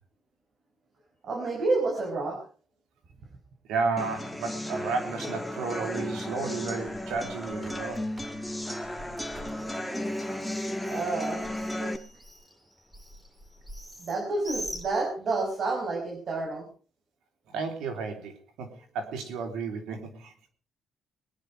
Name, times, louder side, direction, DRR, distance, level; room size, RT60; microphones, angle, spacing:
voice 1, 1.2-2.4 10.9-12.0 14.0-16.7, right 3 dB, 55° right, 0 dB, 5.3 m, -30 dB
voice 2, 3.7-8.0 17.5-20.5, right 4 dB, 90° right, 5 dB, 3.3 m, -33 dB
sound 1, 4.0-12.0, left 1 dB, 5° left, 1.6 m, -34 dB
Bird, 6.6-15.5, equal, 15° right, 3.3 m, -45 dB
22.5 x 9.7 x 4.9 m, 0.40 s
cardioid pair, 90°, 0 cm